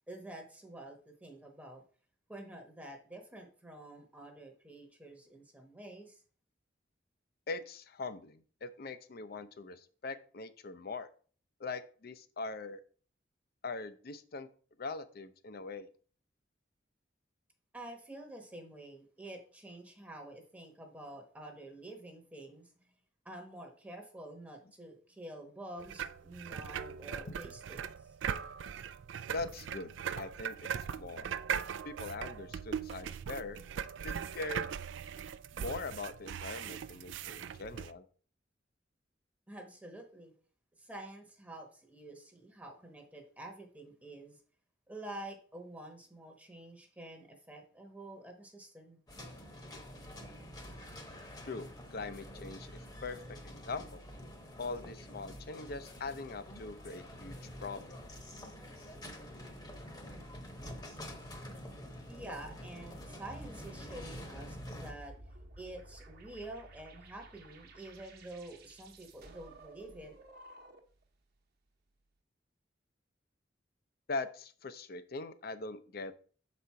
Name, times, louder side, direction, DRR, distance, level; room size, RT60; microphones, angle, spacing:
voice 1, 0.1-1.8 2.3-6.2 17.7-22.9 23.2-28.2 39.5-40.3 40.8-44.4 44.9-49.0 62.1-65.1 65.6-70.1, right 1 dB, 10° right, 2 dB, 0.9 m, -48 dB
voice 2, 7.5-11.1 11.6-12.8 13.6-14.5 14.8-15.9 29.3-30.6 30.9-31.4 31.8-33.6 34.0-34.7 35.5-38.1 51.5-52.7 53.0-54.0 54.6-57.9 74.1-76.1, left 3 dB, 55° left, 12 dB, 0.6 m, -41 dB
sound 1, 25.8-37.9, right 8 dB, 90° right, 0.3 m, -40 dB
sound 2, 49.1-64.9, equal, 25° left, 1.0 m, -47 dB
sound 3, 63.2-71.0, right 1 dB, 60° right, 1.0 m, -53 dB
6.4 x 4.2 x 4.6 m, 0.43 s
head